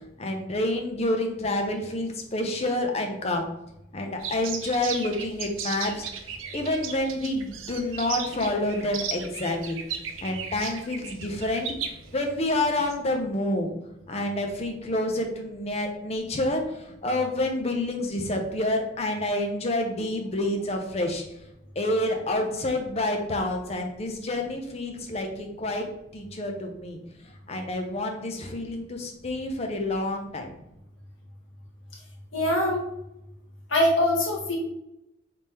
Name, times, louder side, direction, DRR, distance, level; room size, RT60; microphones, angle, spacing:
voice 1, 0.2-3.5 3.9-9.8 10.2-11.7 12.1-13.7 14.1-21.2 21.8-25.9 26.1-27.0 27.5-30.5, left 1 dB, 30° left, 3 dB, 0.6 m, -28 dB
sound 1, 4.2-13.0, right 6 dB, 85° right, 0.6 m, -36 dB
voice 2, 32.3-32.8 33.7-34.6, left 1 dB, 75° left, -1 dB, 1.3 m, -23 dB
3.6 x 3.4 x 4.2 m, 0.86 s
head